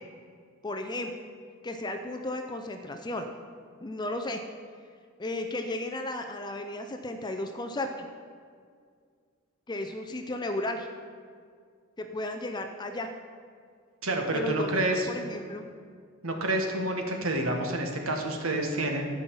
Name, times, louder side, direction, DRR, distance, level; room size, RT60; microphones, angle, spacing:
voice 1, 0.6-1.1 1.6-3.3 3.8-4.4 5.2-8.1 9.7-10.9 12.0-13.1 14.3-15.6, left 1 dB, 20° left, 5 dB, 0.5 m, -34 dB
voice 2, 14.0-15.1 16.2-19.1, right 1 dB, 85° right, 3 dB, 1.5 m, -28 dB
12.0 x 5.5 x 7.0 m, 2.1 s
head